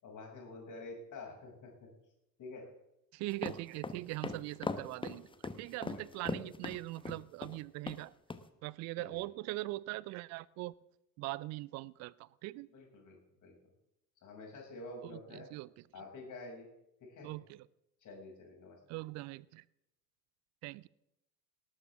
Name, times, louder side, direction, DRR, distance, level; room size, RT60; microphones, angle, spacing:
voice 1, 0.0-1.9 2.4-2.7 5.9-6.2 9.0-9.2 12.7-13.6 14.2-15.5 15.9-16.7 17.0-17.4 18.0-19.0, left 2 dB, 35° left, 0 dB, 7.0 m, -49 dB
voice 2, 3.1-5.3 5.6-8.1 8.6-10.7 11.2-12.7 15.0-15.7 17.2-17.7 18.9-19.6 20.6-20.9, right 20 dB, 35° right, 23 dB, 0.5 m, -41 dB
sound 1, 3.3-7.6 7.9-8.0 8.3-8.4, left 3 dB, 10° left, 1.1 m, -39 dB
18.5 x 18.5 x 3.7 m, 0.86 s
figure-of-eight pair, 70°, 49 cm